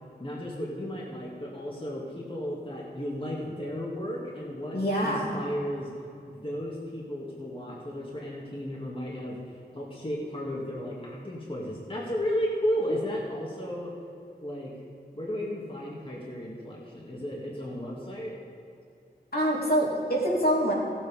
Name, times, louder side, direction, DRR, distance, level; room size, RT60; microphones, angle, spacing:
voice 1, 0.2-5.9 6.3-9.4 9.7-13.9 14.4-14.7 15.1-18.3, equal, 30° left, -4 dB, 2.0 m, -34 dB
voice 2, 4.7-5.3 12.9-13.0 19.3-20.7, equal, 65° left, -4 dB, 2.8 m, -25 dB
15.0 x 7.8 x 5.0 m, 2.4 s
wide cardioid pair, 50°, 17 cm